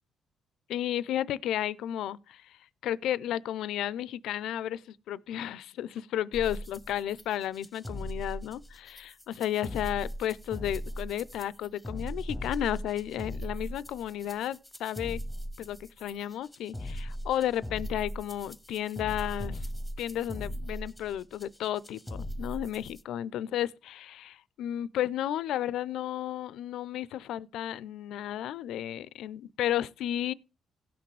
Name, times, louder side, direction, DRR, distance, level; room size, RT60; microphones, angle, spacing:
voice 1, 0.7-15.2 15.6-19.7 20.0-30.3, left 11 dB, 80° left, 0.4 m, -33 dB
sound 1, 6.3-23.0, equal, 5° left, 1.0 m, -39 dB
17.0 x 6.0 x 3.3 m
cardioid pair, 90°, 0 cm